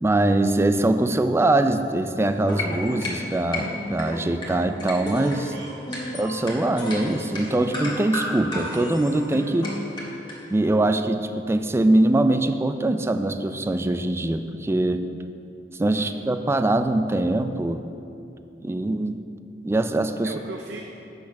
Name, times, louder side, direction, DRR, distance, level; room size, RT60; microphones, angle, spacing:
voice 1, 0.0-5.5 6.1-9.7 10.5-15.0 15.8-17.8 18.6-19.2 19.6-20.3, right 2 dB, 15° right, 9 dB, 0.3 m, -22 dB
sound 1, 2.3-10.4, left 1 dB, 25° left, 1.6 m, -32 dB
voice 2, 5.5-6.2 15.9-16.1 20.2-20.9, right 2 dB, 85° right, 2 dB, 0.6 m, -39 dB
8.3 x 6.4 x 5.8 m, 2.8 s
head